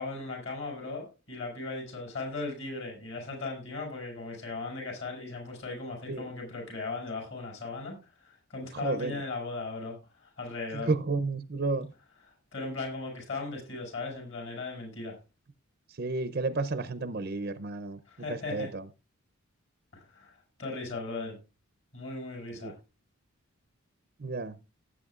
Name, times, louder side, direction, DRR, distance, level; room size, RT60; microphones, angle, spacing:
voice 1, 0.0-10.9 12.5-15.2 18.0-18.7 19.9-21.4 21.9-22.7, left 3 dB, 60° left, 1 dB, 6.1 m, -37 dB
voice 2, 8.7-9.2 10.7-11.9 16.0-18.0 18.3-18.8 22.6-22.7 24.2-24.6, right 3 dB, 45° right, 12 dB, 0.5 m, -32 dB
17.5 x 8.4 x 2.4 m, 0.29 s
head